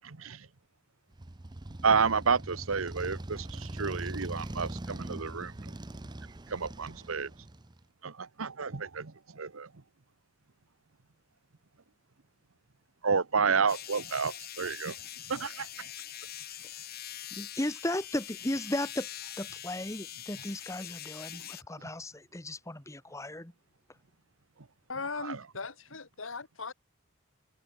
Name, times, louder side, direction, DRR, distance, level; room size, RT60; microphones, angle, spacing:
voice 1, 0.0-0.5 1.8-5.7 6.5-7.3 8.0-9.7 13.0-15.0 15.3-15.9 21.3-21.5 21.8-21.9 25.1-25.4, right 5 dB, 85° right, 1.0 m, -31 dB
Motorcycle, 1.1-7.8, right 1 dB, 20° right, 0.6 m, -41 dB
sound 1, 13.7-21.6, left 12 dB, 50° left, 1.4 m, -43 dB
voice 2, 17.3-19.1 19.4-23.5, left 1 dB, 15° left, 1.5 m, -35 dB
voice 3, 24.9-26.7, left 4 dB, 75° left, 1.9 m, -38 dB
head